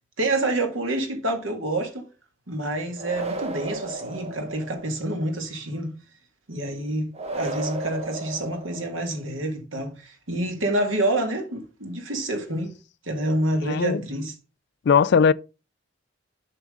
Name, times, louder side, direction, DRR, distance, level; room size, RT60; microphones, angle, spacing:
voice 1, 0.2-2.0 2.5-5.9 6.5-12.7 13.0-14.3, right 1 dB, 90° right, 2.1 m, -27 dB
sound 1, 3.0-5.0 7.1-9.2, right 2 dB, 35° right, 1.4 m, -34 dB
voice 2, 13.6-14.0 14.9-15.3, left 6 dB, 60° left, 0.4 m, -18 dB
7.8 x 6.0 x 3.7 m
head